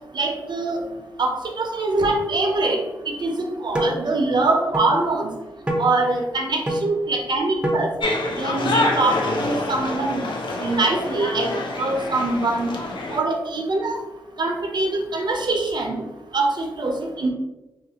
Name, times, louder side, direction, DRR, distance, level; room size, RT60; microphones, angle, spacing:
voice 1, 0.1-0.8 1.2-2.8 3.2-5.3 5.8-7.9 8.4-10.2 10.6-11.5 11.8-12.7 13.1-14.0 14.4-16.0 16.3-17.3, right 2 dB, 55° right, 3 dB, 0.6 m, -23 dB
sound 1, 3.7-4.0 4.7-4.9 5.7-5.9 6.7-6.8 7.6-7.8, equal, 10° right, 0.8 m, -23 dB
sound 2, 8.0-13.2, left 2 dB, 65° left, 0.6 m, -26 dB
2.8 x 2.4 x 2.8 m, 1.1 s
supercardioid pair, 40°, 9 cm